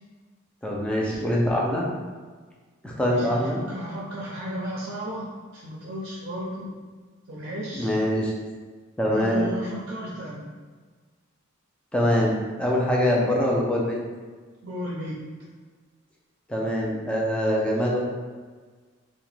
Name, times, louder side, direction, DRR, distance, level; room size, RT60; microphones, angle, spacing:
voice 1, 0.6-1.9 2.8-3.6 7.7-8.3 9.0-9.5 11.9-14.0 16.5-18.0, equal, 5° left, -3 dB, 0.4 m, -24 dB
voice 2, 3.1-6.7 7.3-8.0 9.1-10.4 14.6-15.2, equal, 55° right, -6 dB, 0.5 m, -34 dB
2.8 x 2.1 x 3.1 m, 1.4 s
head